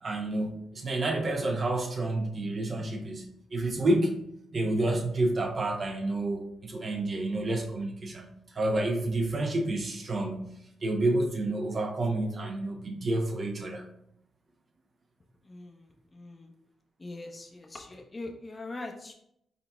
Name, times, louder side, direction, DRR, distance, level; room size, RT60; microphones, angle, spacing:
voice 1, 0.0-4.2 4.5-10.5 10.8-13.9, right 2 dB, 50° right, 3 dB, 0.9 m, -29 dB
voice 2, 15.4-16.5 17.0-19.1, left 2 dB, 30° left, 2 dB, 0.6 m, -42 dB
4.0 x 3.9 x 2.3 m, 0.75 s
supercardioid pair, 55°, 0 cm